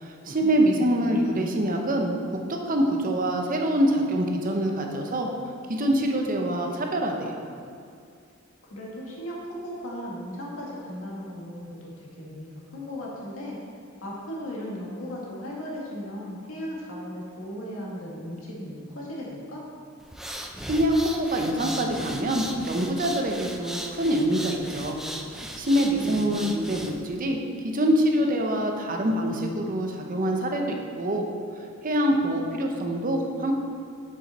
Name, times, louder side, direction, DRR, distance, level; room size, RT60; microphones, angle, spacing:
voice 1, 0.0-5.3 5.7-7.4 20.7-25.0 25.3-27.4 27.6-31.2 31.8-33.5, right 1 dB, 40° right, 2 dB, 0.8 m, -25 dB
voice 2, 0.7-1.2 8.7-13.6 14.0-19.7 25.9-26.4, equal, 85° left, -4 dB, 1.8 m, -37 dB
sound 1, 20.0-27.2, equal, ahead, 0.4 m, -37 dB
7.0 x 6.0 x 4.3 m, 2.4 s
head